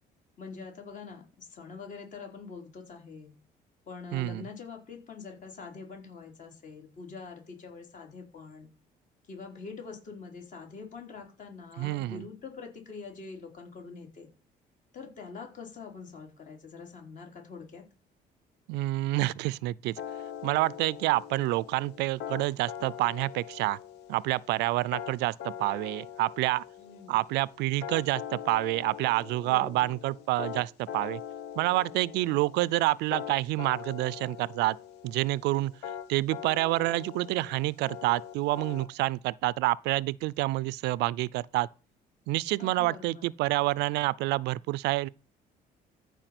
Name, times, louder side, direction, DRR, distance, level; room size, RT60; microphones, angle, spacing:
voice 1, 0.4-3.3 3.9-8.7 9.3-14.3 14.9-17.8 26.8-27.2 29.4-29.9 42.6-43.2, left 5 dB, 50° left, 3.8 m, -44 dB
voice 2, 4.1-4.5 11.8-12.2 18.7-19.9 20.4-23.8 24.1-26.6 27.1-31.2 31.6-34.8 35.0-35.7 36.1-41.7 42.3-45.1, right 19 dB, 85° right, 0.4 m, -28 dB
sound 1, 20.0-38.9, left 9 dB, 80° left, 1.0 m, -42 dB
14.0 x 4.9 x 6.0 m
cardioid pair, 110°, 17 cm